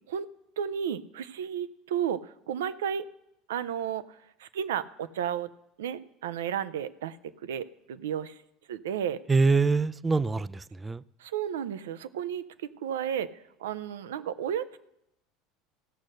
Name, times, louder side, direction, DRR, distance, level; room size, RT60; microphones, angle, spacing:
voice 1, 0.6-3.1 3.5-5.5 5.8-8.3 8.7-9.2 11.2-13.3 13.6-14.8, right 9 dB, 80° right, 14 dB, 0.5 m, -33 dB
voice 2, 9.3-11.0, right 4 dB, 20° right, 19 dB, 0.3 m, -24 dB
15.5 x 6.4 x 6.4 m, 0.85 s
hypercardioid pair, 85°, 0 cm